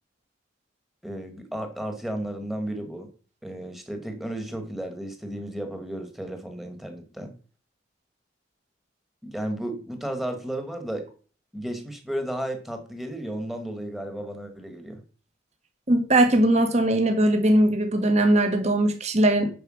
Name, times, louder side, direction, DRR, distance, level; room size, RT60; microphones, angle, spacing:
voice 1, 1.0-3.1 3.4-7.3 9.2-11.0 11.5-15.0, right 1 dB, ahead, 5 dB, 1.6 m, -33 dB
voice 2, 15.9-19.5, right 1 dB, 35° right, 6 dB, 1.7 m, -20 dB
10.0 x 4.8 x 6.3 m, 0.38 s
head